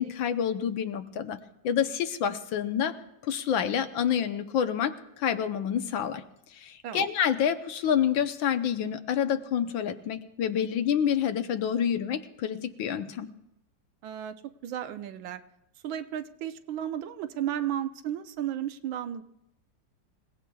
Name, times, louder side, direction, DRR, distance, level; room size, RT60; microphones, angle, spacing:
voice 1, 0.0-1.4 1.6-3.0 3.2-6.2 6.5-13.3, left 8 dB, 85° left, 8 dB, 1.7 m, -28 dB
voice 2, 14.0-14.3 14.6-15.4 15.8-19.2, right 10 dB, 90° right, 10 dB, 1.5 m, -33 dB
26.5 x 17.5 x 2.3 m, 0.86 s
omnidirectional pair, 2.1 m